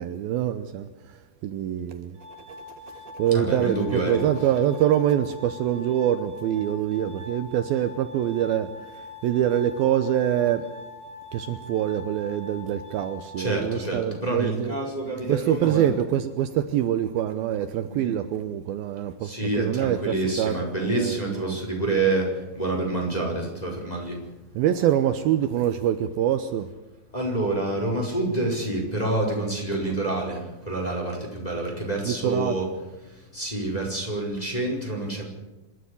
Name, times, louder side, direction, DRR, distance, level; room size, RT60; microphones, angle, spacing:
voice 1, 0.0-2.2 2.5-2.6 3.1-10.7 11.3-14.7 15.3-20.6 20.8-21.6 24.6-26.7 32.1-32.6, right 11 dB, 75° right, 2.5 m, -25 dB
Glass, 2.2-14.2, left 3 dB, 45° right, 2.7 m, -43 dB
voice 2, 3.3-4.3 13.4-15.9 17.9-18.2 19.2-24.2 27.1-32.6 33.0-35.3, right 2 dB, 10° left, 4.7 m, -27 dB
26.5 x 12.0 x 9.8 m
omnidirectional pair, 4.6 m